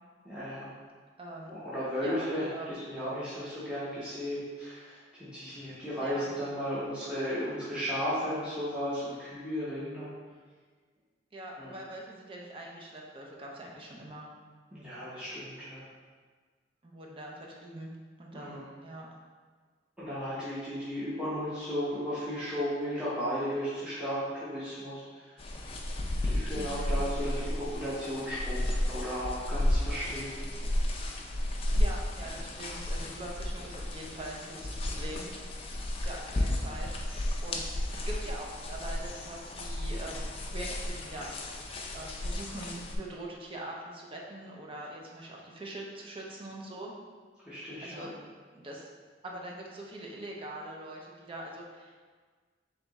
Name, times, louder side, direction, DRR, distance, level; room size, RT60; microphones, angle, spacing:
voice 1, 0.2-0.7 1.5-10.1 11.6-11.7 14.7-15.9 18.3-18.6 20.0-25.3 26.2-30.5 47.4-48.1, equal, 5° right, -12 dB, 0.9 m, -35 dB
voice 2, 1.2-1.5 2.0-2.7 6.0-6.3 11.3-14.3 16.8-17.9 18.2-19.1 26.5-27.0 31.7-35.3 36.0-36.9 37.4-41.6 41.9-46.9 47.8-48.1 48.5-48.9 49.2-52.1, right 1 dB, 30° right, -2 dB, 0.6 m, -43 dB
sound 1, 25.4-43.0, left 1 dB, 30° left, 0.4 m, -33 dB
3.5 x 3.4 x 4.0 m, 1.5 s
head